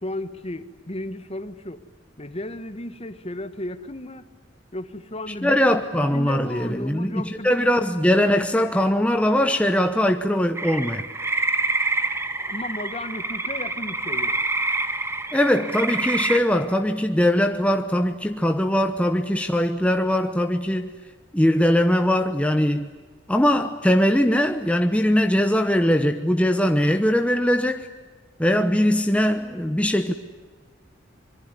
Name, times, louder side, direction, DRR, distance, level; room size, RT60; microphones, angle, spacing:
voice 1, 0.0-1.8 2.2-4.3 4.7-5.8 6.1-7.7 12.4-14.4, left 1 dB, 35° left, 1.6 m, -34 dB
voice 2, 5.3-11.1 15.3-20.9 21.3-22.9 23.3-27.9 28.4-30.1, equal, 5° left, 1.0 m, -21 dB
sound 1, 10.6-16.4, right 2 dB, 15° right, 1.5 m, -26 dB
25.5 x 23.0 x 10.0 m
head